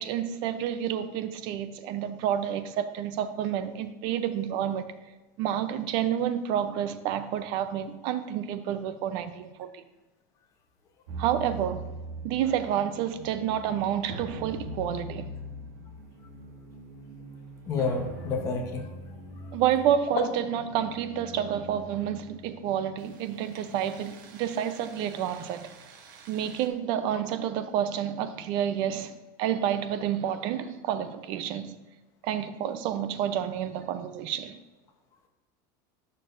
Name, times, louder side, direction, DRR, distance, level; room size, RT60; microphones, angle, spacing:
voice 1, 0.0-4.9 5.4-9.8 11.2-11.8 12.2-15.3 19.5-25.7 26.3-29.1 29.4-31.8 32.2-34.6, right 10 dB, 50° right, 0.6 m, -29 dB
sound 1, 11.1-26.7, right 2 dB, 85° right, 1.2 m, -43 dB
voice 2, 17.7-18.9, left 4 dB, 30° left, 0.9 m, -29 dB
9.9 x 6.7 x 2.6 m
supercardioid pair, 160°, 10 cm